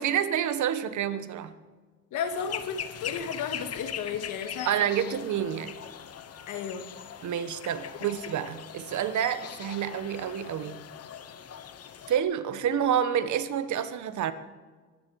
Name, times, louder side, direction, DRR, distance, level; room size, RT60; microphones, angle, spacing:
voice 1, 0.0-1.5 4.6-5.7 7.2-10.8 12.1-14.3, right 9 dB, 75° right, 12 dB, 1.3 m, -28 dB
voice 2, 2.1-5.1 6.5-6.9, left 7 dB, 85° left, 7 dB, 2.1 m, -34 dB
sound 1, 2.3-12.2, left 8 dB, 55° left, 1.1 m, -41 dB
23.5 x 10.5 x 4.8 m, 1.4 s
cardioid pair, 90°, 30 cm